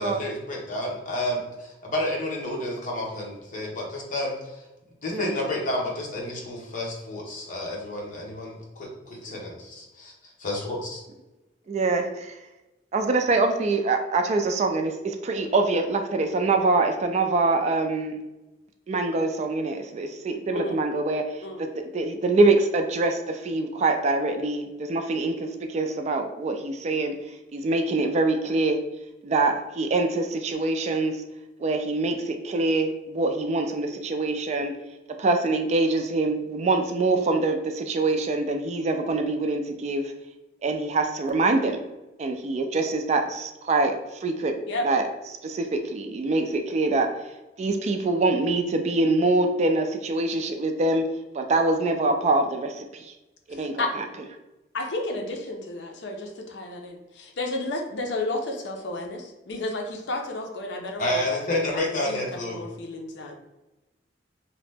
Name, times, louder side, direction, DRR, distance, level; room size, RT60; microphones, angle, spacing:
voice 1, 0.0-4.5 5.0-10.1 10.4-11.0 61.0-62.6, left 1 dB, 45° left, 0.8 m, -30 dB
voice 2, 11.7-12.3 12.9-18.2 18.9-21.7 21.9-27.2 27.5-28.8 29.2-31.2 31.6-34.7 35.2-40.1 40.6-41.8 42.2-43.9 44.2-44.6 44.8-45.0 45.4-47.1 47.6-51.0 51.3-53.0 53.5-54.1, right 3 dB, 40° right, 0.3 m, -24 dB
voice 3, 54.7-61.6 62.1-63.4, left 2 dB, 75° left, 0.5 m, -32 dB
2.8 x 2.0 x 3.3 m
head